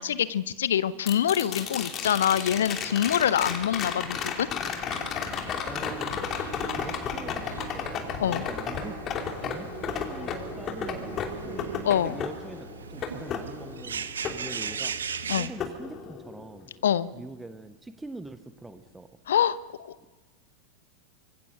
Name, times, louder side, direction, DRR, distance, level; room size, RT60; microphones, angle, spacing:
voice 1, 0.0-4.5 8.2-8.5 11.8-12.2 15.3-15.5 16.8-17.1 19.3-19.9, left 9 dB, 60° left, 17 dB, 0.8 m, -25 dB
sound 1, 1.1-15.2 15.6-16.6 18.9-19.0, left 7 dB, 30° left, 2.9 m, -34 dB
sound 2, 4.9-15.5, right 7 dB, 70° right, 1.1 m, -40 dB
voice 2, 5.6-6.1 6.7-9.0 9.3-11.7 12.0-14.9 15.3-16.7 17.1-19.1, right 2 dB, 5° right, 9 dB, 1.1 m, -43 dB
sound 3, 5.8-11.8, right 6 dB, 50° right, 3.5 m, -42 dB
25.5 x 22.0 x 6.1 m, 1.3 s
figure-of-eight pair, 90°, 0 cm